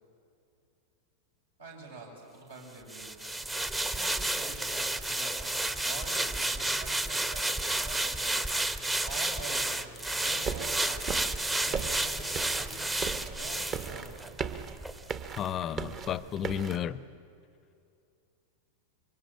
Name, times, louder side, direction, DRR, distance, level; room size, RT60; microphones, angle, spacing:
voice 1, 1.6-3.3 3.8-5.6 5.8-8.4 9.1-9.6 10.2-11.2 11.6-12.9 13.4-14.2, right 3 dB, 75° right, -2 dB, 7.7 m, -46 dB
sound 1, 2.9-14.5 14.8-15.0, right 2 dB, 10° right, 1.0 m, -31 dB
sound 2, 10.5-16.8, right 6 dB, 30° right, 1.4 m, -38 dB
voice 2, 15.4-17.0, left 9 dB, 30° left, 19 dB, 0.7 m, -33 dB
26.0 x 23.5 x 9.1 m, 2.6 s
figure-of-eight pair, 90°, 0 cm